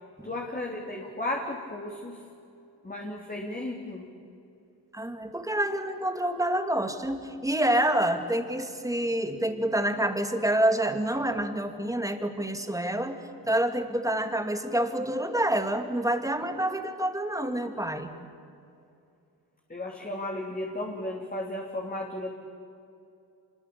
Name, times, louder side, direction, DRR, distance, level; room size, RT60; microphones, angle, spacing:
voice 1, 0.2-2.2 2.8-4.1 19.7-22.3, left 1 dB, 20° left, -1 dB, 3.4 m, -34 dB
voice 2, 4.9-18.1, right 1 dB, 10° right, 6 dB, 2.5 m, -27 dB
25.5 x 21.5 x 8.6 m, 2.6 s
cardioid pair, 80°, 42 cm